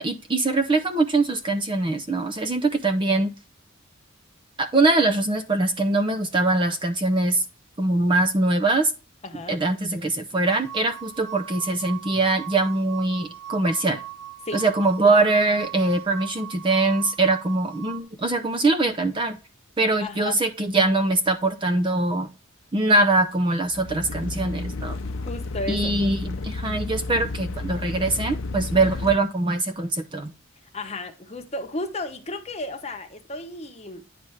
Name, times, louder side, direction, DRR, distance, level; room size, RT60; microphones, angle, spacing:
voice 1, 0.0-3.3 4.6-7.4 7.8-8.9 9.5-14.0 14.5-19.4 19.8-22.3 22.7-25.0 25.7-30.3, right 2 dB, 25° right, 0.5 m, -22 dB
voice 2, 9.2-9.6 14.4-14.6 20.0-20.4 25.0-25.9 30.7-34.0, left 2 dB, 30° left, 1.0 m, -33 dB
sound 1, 10.5-18.0, right 12 dB, 60° right, 0.8 m, -39 dB
sound 2, 23.6-29.2, left 3 dB, 75° left, 0.7 m, -32 dB
9.7 x 3.4 x 5.6 m
head